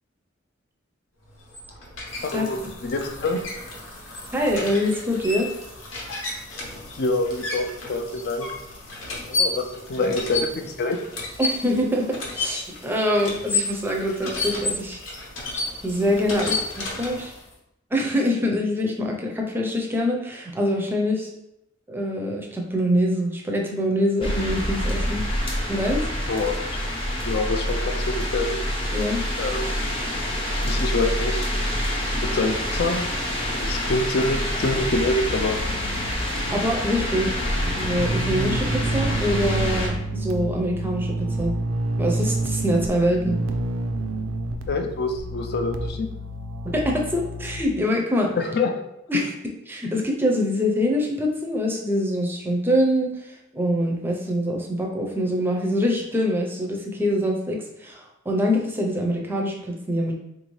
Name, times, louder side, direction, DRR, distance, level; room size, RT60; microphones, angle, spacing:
sound 1, 1.3-17.5, left 3 dB, 70° left, 0.9 m, -32 dB
voice 1, 2.2-3.4 7.0-8.5 9.3-11.0 26.3-26.7 27.2-28.6 29.4-29.7 30.6-31.7 32.3-33.1 33.6-35.6 44.7-46.1 48.4-48.8 49.1-49.2, left 2 dB, 55° left, 4 dB, 0.4 m, -26 dB
voice 2, 4.3-5.5 10.0-10.1 11.4-15.0 15.8-17.3 17.9-21.3 21.9-25.2 25.7-26.0 28.9-29.2 36.2-41.5 42.0-43.4 46.6-48.3 49.1-49.3 49.7-60.1, equal, 10° right, 0 dB, 0.5 m, -24 dB
sound 2, 24.2-39.9, equal, 30° left, 0.8 m, -27 dB
sound 3, 35.2-47.6, right 1 dB, 80° right, 0.4 m, -29 dB
3.8 x 2.6 x 3.1 m, 0.83 s
head